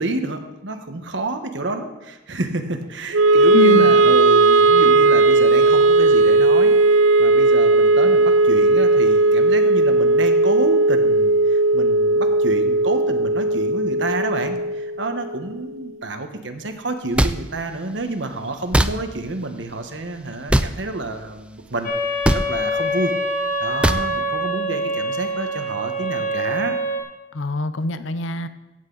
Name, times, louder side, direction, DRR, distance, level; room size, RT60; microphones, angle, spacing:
voice 1, 0.0-21.9 22.3-23.1 23.6-26.8, right 2 dB, 70° right, 6 dB, 1.2 m, -29 dB
Wind instrument woodwind instrument, 3.1-15.4, right 2 dB, 85° right, 0.5 m, -16 dB
voice 2, 3.5-4.0 27.3-28.5, left 3 dB, 80° left, 12 dB, 0.7 m, -24 dB
sound 1, 17.2-17.3 18.7-18.9 20.5-20.7 22.2-22.4 23.8-24.0, right 1 dB, 5° right, 0.3 m, -17 dB
sound 2, 21.8-27.0, equal, 40° left, 1.7 m, -25 dB
16.5 x 8.1 x 4.0 m, 1.1 s
head